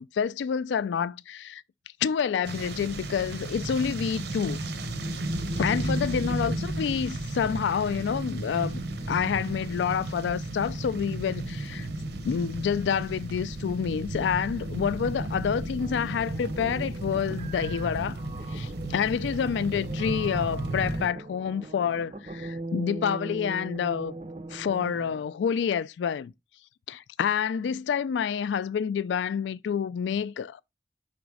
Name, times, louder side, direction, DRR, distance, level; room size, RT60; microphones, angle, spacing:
voice 1, 0.0-1.6 2.0-4.6 5.6-8.8 9.1-11.9 12.2-18.2 18.5-24.1 24.5-26.3 26.9-30.6, left 7 dB, 90° left, 0.3 m, -28 dB
sound 1, 2.4-21.1, right 1 dB, 75° right, 0.8 m, -33 dB
sound 2, 15.8-25.3, right 2 dB, 35° right, 0.4 m, -41 dB
5.2 x 3.9 x 4.7 m
head